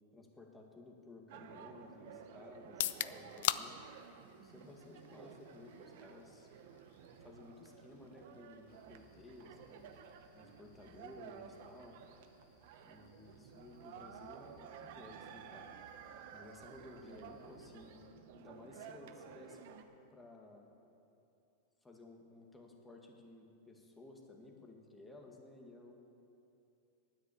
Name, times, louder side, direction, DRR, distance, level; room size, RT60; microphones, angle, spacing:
voice 1, 0.1-3.8 4.4-6.5 7.2-9.9 10.3-12.0 12.8-15.7 16.3-18.1 18.3-19.7 20.1-20.7 21.8-26.0, left 2 dB, 10° left, 1 dB, 1.8 m, -55 dB
sound 1, 1.3-19.8, right 8 dB, 65° right, 0.9 m, -54 dB
sound 2, 2.6-16.5, left 13 dB, 65° left, 0.4 m, -46 dB
sound 3, 8.7-18.1, right 1 dB, 40° left, 2.9 m, -68 dB
10.0 x 9.4 x 8.5 m, 2.7 s
hypercardioid pair, 125°, 0 cm